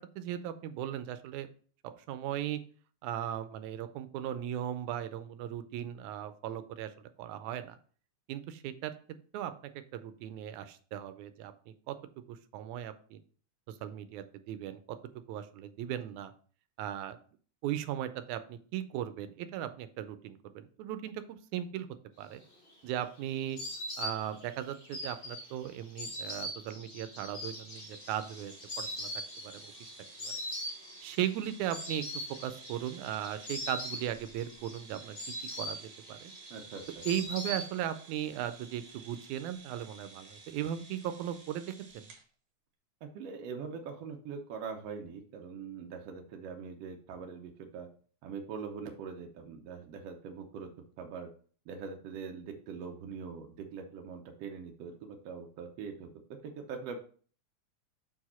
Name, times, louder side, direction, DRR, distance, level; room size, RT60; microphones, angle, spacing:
voice 1, 0.2-1.5 2.1-2.6 3.0-6.9 7.2-7.8 8.3-8.9 9.3-9.5 9.9-12.0 12.3-13.2 13.7-14.8 15.3-16.3 16.8-17.2 17.6-21.9 22.2-22.4 22.8-23.6 24.0-29.1 29.4-29.9 30.2-30.4 31.0-32.0 32.4-35.2 35.6-35.8 36.1-36.3 37.1-42.1, right 11 dB, 90° right, 11 dB, 2.0 m, -37 dB
Insect, 22.4-38.1 38.4-39.2, equal, 50° left, 0.6 m, -42 dB
sound 1, 27.8-42.2, right 5 dB, 55° right, 2.0 m, -54 dB
voice 2, 36.5-37.1 43.0-47.9 48.2-50.7 51.0-51.3 51.7-57.0, right 5 dB, 70° right, 3 dB, 1.6 m, -43 dB
6.1 x 4.8 x 4.2 m, 0.43 s
omnidirectional pair, 3.3 m